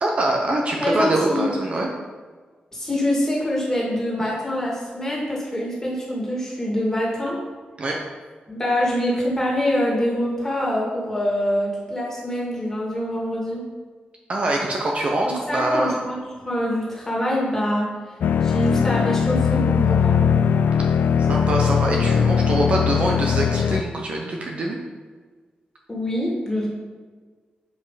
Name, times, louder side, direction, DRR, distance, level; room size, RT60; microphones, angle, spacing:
voice 1, 0.0-1.9 7.8-8.0 14.3-15.9 21.3-24.8, right 1 dB, 40° right, 0 dB, 0.9 m, -24 dB
voice 2, 0.8-1.5 2.7-7.4 8.5-13.6 15.2-16.2 16.4-17.9 18.4-20.2 25.9-26.7, left 1 dB, 15° left, -5 dB, 2.3 m, -25 dB
sound 1, 18.2-23.8, left 7 dB, 80° left, 0.3 m, -20 dB
7.2 x 5.3 x 5.0 m, 1.5 s
wide cardioid pair, 170°, 3 cm